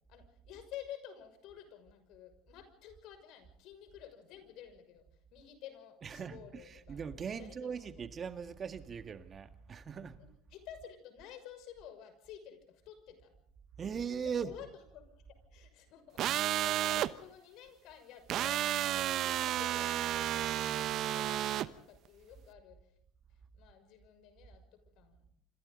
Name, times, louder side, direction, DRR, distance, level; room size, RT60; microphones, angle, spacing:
voice 1, 0.1-5.1 5.3-7.0 7.4-8.0 10.2-13.3 14.2-22.9 23.5-25.3, left 10 dB, 65° left, 6.2 m, -52 dB
voice 2, 6.0-6.4 6.9-10.2 13.8-14.5, right 6 dB, 35° right, 1.7 m, -39 dB
sound 1, 16.2-17.1 18.3-21.7, right 12 dB, 55° right, 1.0 m, -32 dB
27.0 x 27.0 x 3.9 m
supercardioid pair, 85°, 0 cm